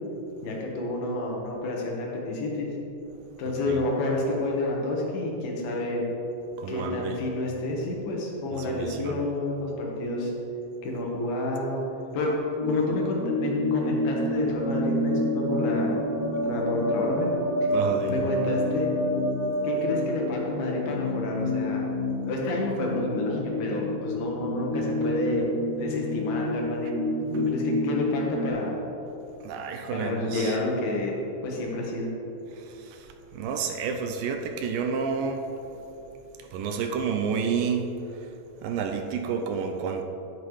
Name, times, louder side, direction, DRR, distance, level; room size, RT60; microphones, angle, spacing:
voice 1, 0.4-2.7 3.4-6.0 6.7-10.3 10.8-11.8 12.1-12.3 12.7-16.0 16.4-17.3 18.1-18.9 19.6-21.8 22.2-25.4 25.8-26.9 27.3-28.8 29.9-31.1 31.4-32.1, left 2 dB, 85° left, -2 dB, 3.3 m, -29 dB
voice 2, 6.6-7.2 8.5-9.2 17.7-18.2 29.4-30.6 32.5-35.5 36.5-37.9 38.6-40.0, right 6 dB, 80° right, 4 dB, 2.2 m, -30 dB
sound 1, 12.6-28.5, left 1 dB, 55° left, 2.1 m, -30 dB
sound 2, 14.0-20.8, right 1 dB, 50° right, 2.6 m, -30 dB
10.0 x 9.4 x 3.2 m, 3.0 s
omnidirectional pair, 4.2 m